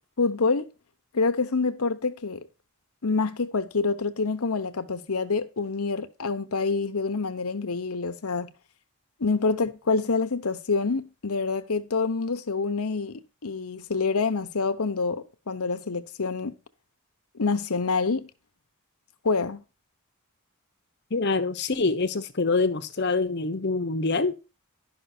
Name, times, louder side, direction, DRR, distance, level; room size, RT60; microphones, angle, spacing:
voice 1, 0.2-0.6 1.1-2.4 3.0-8.5 9.2-16.5 17.4-18.3 19.2-19.6, left 4 dB, 80° left, 0.9 m, -27 dB
voice 2, 21.1-24.4, left 3 dB, 50° left, 0.9 m, -25 dB
11.5 x 5.8 x 4.4 m
head